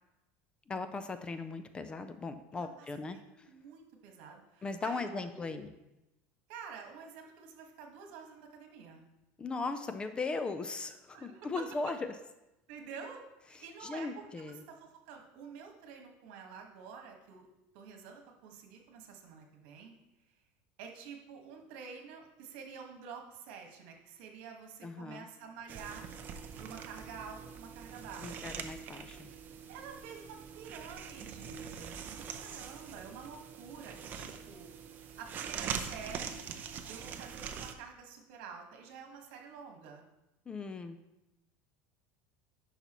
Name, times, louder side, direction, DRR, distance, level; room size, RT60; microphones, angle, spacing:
voice 1, 0.7-3.2 4.6-5.7 9.4-12.1 13.5-14.6 24.8-25.3 28.2-29.3 40.5-41.0, left 3 dB, 15° left, 10 dB, 0.4 m, -38 dB
voice 2, 3.1-5.6 6.5-9.0 11.1-11.4 12.7-17.5 17.7-19.9 20.8-26.1 26.6-28.4 28.9-29.2 29.7-34.7 35.2-36.5 36.9-40.0, right 6 dB, 70° right, 2 dB, 1.6 m, -49 dB
sound 1, 25.7-37.7, right 7 dB, 35° right, 0.6 m, -43 dB
10.5 x 5.7 x 3.1 m, 0.95 s
cardioid pair, 155°, 6 cm